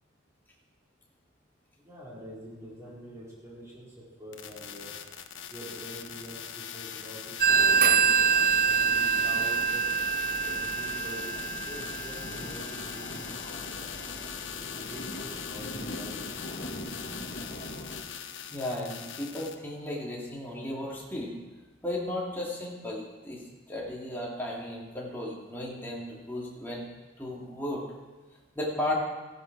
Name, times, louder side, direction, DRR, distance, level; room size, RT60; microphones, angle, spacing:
voice 1, 1.8-4.9 5.5-7.3 7.7-8.0 8.6-9.8 10.3-13.2 13.5-14.1 14.6-16.3, equal, 15° right, -7 dB, 4.5 m, -46 dB
sound 1, 4.3-19.5, left 8 dB, 80° left, 1.0 m, -41 dB
sound 2, 7.4-18.0, left 1 dB, 50° left, 1.5 m, -42 dB
Telephone, 7.4-12.7, right 6 dB, 45° right, 0.4 m, -25 dB
voice 2, 18.5-21.4 21.8-23.4 23.7-26.9 27.2-27.8 28.5-28.9, left 1 dB, 10° left, -4 dB, 2.6 m, -35 dB
15.5 x 11.0 x 4.8 m, 1.3 s
head